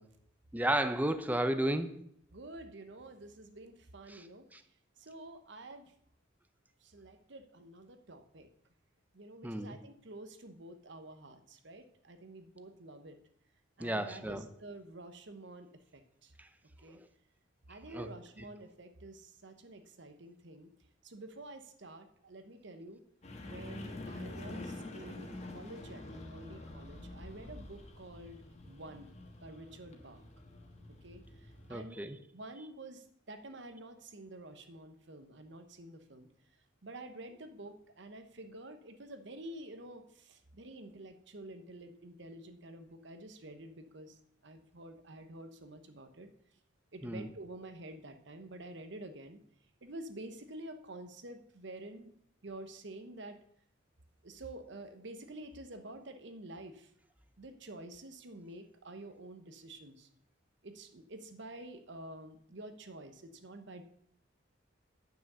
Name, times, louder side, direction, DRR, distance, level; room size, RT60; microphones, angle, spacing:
voice 1, 0.5-1.9 4.1-4.3 4.5-4.6 9.4-9.8 13.8-14.4 16.4-16.5 17.9-18.1 31.7-32.2 47.0-47.3, right 1 dB, 10° right, 10 dB, 0.6 m, -33 dB
voice 2, 2.3-4.4 5.0-5.9 6.8-8.5 9.1-13.2 13.8-16.3 16.8-17.0 17.7-20.7 21.0-23.0 23.4-28.4 28.6-29.1 29.4-30.2 31.0-32.1 32.3-36.3 36.8-44.2 44.4-46.3 46.9-49.4 49.8-52.1 52.4-53.4 54.2-56.9 57.4-60.1 60.6-63.8, right 1 dB, 60° right, 8 dB, 1.0 m, -49 dB
sound 1, 23.2-31.8, left 2 dB, 35° left, 1.5 m, -47 dB
9.9 x 6.1 x 6.8 m, 0.69 s
head